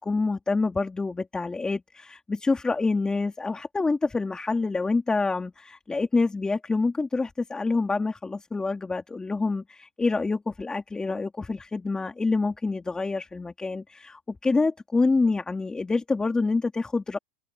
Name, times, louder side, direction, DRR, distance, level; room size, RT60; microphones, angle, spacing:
voice 1, 0.0-17.2, left 3 dB, 10° left, 3.1 m, -27 dB
supercardioid pair, 130°, 7 cm